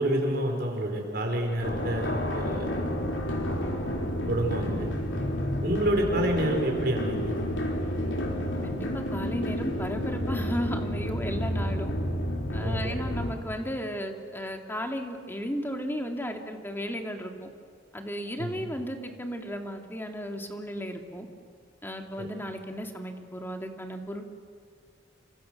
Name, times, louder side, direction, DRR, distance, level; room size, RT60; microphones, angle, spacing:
voice 1, 0.0-2.7 4.3-4.9 5.6-7.3 11.4-11.5 12.6-13.0 18.4-18.6 22.2-22.3, right 1 dB, 60° right, 2 dB, 5.0 m, -28 dB
sound 1, 1.6-13.3, equal, 90° left, 3.4 m, -30 dB
voice 2, 8.6-11.9 12.5-17.5 17.9-21.3 21.8-24.3, equal, 10° left, 4 dB, 2.2 m, -35 dB
29.0 x 26.0 x 6.6 m, 2.2 s
head